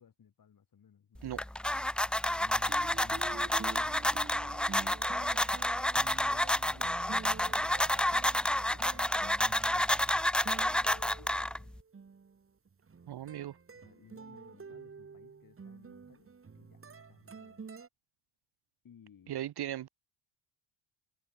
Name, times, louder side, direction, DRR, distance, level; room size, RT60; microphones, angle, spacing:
voice 1, 0.0-1.3 2.6-5.3 6.3-7.2 7.6-7.8 8.0-10.0 10.7-11.8 13.7-17.7 18.8-19.4, left 8 dB, 40° left, 7.3 m, -60 dB
sound 1, 1.2-11.8, left 1 dB, ahead, 0.4 m, -30 dB
sound 2, 2.4-17.9, right 5 dB, 25° right, 3.1 m, -49 dB
voice 2, 13.1-13.6 19.3-19.9, right 12 dB, 50° right, 1.6 m, -37 dB
supercardioid pair, 90°, 49 cm